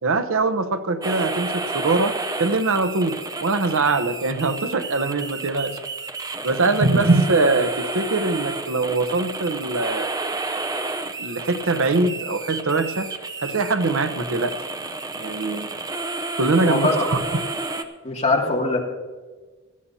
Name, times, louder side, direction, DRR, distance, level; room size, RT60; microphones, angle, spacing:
voice 1, 0.0-5.8 6.4-10.1 11.2-13.1 13.4-14.6 15.2-15.7 16.4-17.4, right 3 dB, 65° right, 10 dB, 0.8 m, -22 dB
sound 1, 1.0-17.8, right 3 dB, 15° right, 0.7 m, -31 dB
voice 2, 16.6-16.9 18.0-18.8, left 3 dB, 35° left, -1 dB, 2.3 m, -21 dB
18.5 x 14.0 x 2.8 m, 1.3 s
head